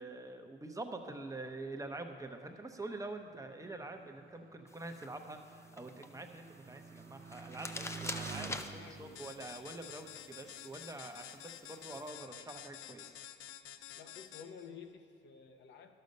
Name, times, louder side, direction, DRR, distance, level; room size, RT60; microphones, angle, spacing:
voice 1, 0.0-13.2, right 2 dB, 15° right, 5 dB, 0.8 m, -46 dB
Motorcycle, 2.3-11.3 12.0-12.6, right 6 dB, 45° right, 0.6 m, -51 dB
sound 1, 4.7-12.1, left 2 dB, 15° left, 0.5 m, -48 dB
voice 2, 8.5-9.3 14.0-16.0, left 6 dB, 65° left, 6 dB, 0.9 m, -52 dB
sound 2, 9.2-14.7, left 11 dB, 90° left, 0.4 m, -50 dB
11.5 x 6.7 x 5.3 m, 2.2 s
cardioid pair, 90°, 20 cm